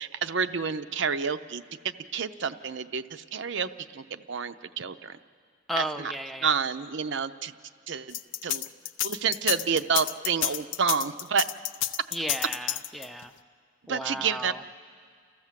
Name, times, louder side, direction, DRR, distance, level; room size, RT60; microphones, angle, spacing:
voice 1, 0.0-5.2 5.8-6.1 6.4-7.5 7.9-8.2 8.4-8.6 9.0-11.5 13.8-14.5, right 6 dB, 60° right, 10 dB, 0.6 m, -29 dB
voice 2, 5.7-6.5 12.1-13.3 13.9-14.6, equal, ahead, 7 dB, 0.5 m, -34 dB
sound 1, 8.1-13.2, left 13 dB, 60° left, 0.5 m, -29 dB
29.5 x 14.5 x 7.5 m, 2.1 s
head